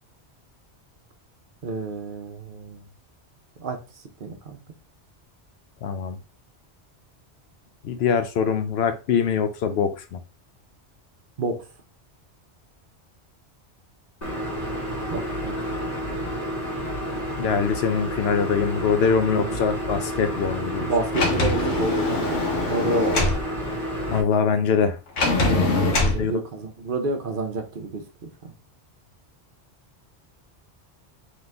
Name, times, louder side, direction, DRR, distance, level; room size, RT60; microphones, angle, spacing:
voice 1, 1.6-2.9 3.6-3.8 4.2-4.6 11.4-11.6 15.1-15.8 19.3-19.6 20.8-22.4 22.7-23.4 26.1-28.0 28.4-28.5, right 2 dB, 55° right, 0.9 m, -29 dB
voice 2, 5.8-6.2 7.8-10.2 17.4-20.9 24.1-25.0 26.0-26.4, left 6 dB, 70° left, 0.8 m, -23 dB
sound 1, 14.2-24.2, equal, 35° left, 1.5 m, -30 dB
Sliding door, 21.1-23.4 25.2-26.2, left 2 dB, 85° left, 1.3 m, -23 dB
3.9 x 3.1 x 3.4 m
omnidirectional pair, 1.2 m